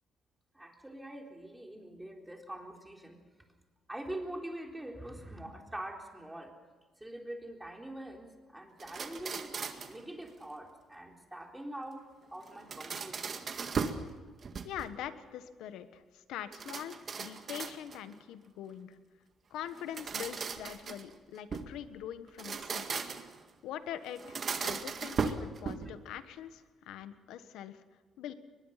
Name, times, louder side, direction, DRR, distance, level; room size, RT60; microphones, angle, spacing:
voice 1, 0.5-3.2 3.9-6.5 7.0-9.5 9.9-13.5, right 1 dB, 10° right, 1 dB, 3.9 m, -44 dB
sound 1, 8.8-10.0 12.4-14.1 14.4-15.0 16.5-18.1 19.7-21.8 22.3-23.4 24.2-26.0, right 5 dB, 45° right, 1.9 m, -37 dB
voice 2, 14.6-19.0 19.5-22.9 23.6-27.8 28.2-28.3, left 10 dB, 90° left, 11 dB, 1.3 m, -43 dB
23.0 x 21.0 x 5.8 m, 1.4 s
cardioid pair, 90°, 0 cm